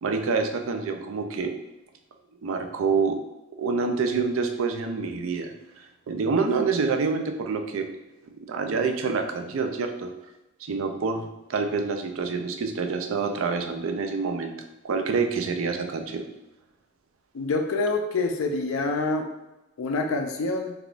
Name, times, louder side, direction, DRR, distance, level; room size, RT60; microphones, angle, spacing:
voice 1, 0.0-1.5 2.4-3.2 3.6-5.5 5.8-7.9 8.4-10.1 10.6-14.5 14.8-16.2, right 4 dB, 75° right, 5 dB, 0.4 m, -27 dB
voice 2, 17.3-19.3 19.8-20.7, left 3 dB, 90° left, 4 dB, 0.4 m, -26 dB
3.4 x 2.3 x 2.4 m, 0.98 s
head